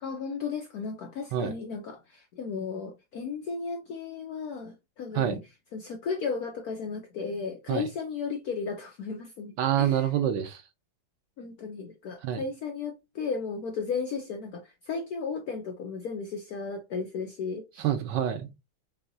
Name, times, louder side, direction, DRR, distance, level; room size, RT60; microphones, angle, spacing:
voice 1, 0.0-5.4 5.7-10.1 11.4-17.9, left 5 dB, 75° left, 0.8 m, -35 dB
voice 2, 9.6-10.6 12.2-12.4 17.8-18.5, right 10 dB, 70° right, 1.1 m, -27 dB
5.4 x 2.8 x 2.6 m
omnidirectional pair, 2.2 m